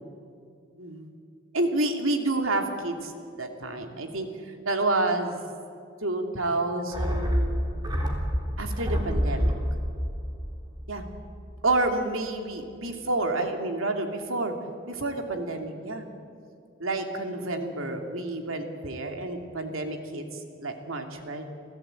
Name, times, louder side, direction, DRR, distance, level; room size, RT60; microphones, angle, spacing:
voice 1, 1.5-3.1 3.4-5.4 6.0-7.6 8.6-9.5 10.9-11.0 11.6-14.5 14.9-16.1 16.8-20.2 20.6-21.4, right 2 dB, 85° right, 4 dB, 2.9 m, -29 dB
sound 1, 6.9-11.5 11.8-11.9, equal, 20° right, 3.5 m, -28 dB
29.0 x 16.5 x 9.1 m, 2.4 s
head